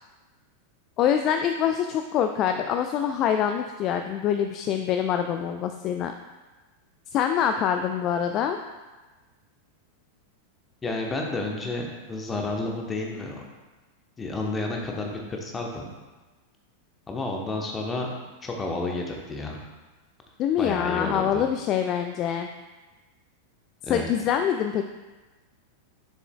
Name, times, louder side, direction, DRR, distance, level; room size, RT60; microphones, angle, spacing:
voice 1, 1.0-6.1 7.1-8.6 20.4-22.5 23.9-24.8, left 9 dB, 35° left, 6 dB, 0.3 m, -25 dB
voice 2, 10.8-13.4 14.2-15.9 17.1-18.1 18.4-19.6 20.6-21.4 23.9-24.1, left 2 dB, 15° left, 0 dB, 1.1 m, -31 dB
7.0 x 6.8 x 2.3 m, 1.2 s
figure-of-eight pair, 90°, 0 cm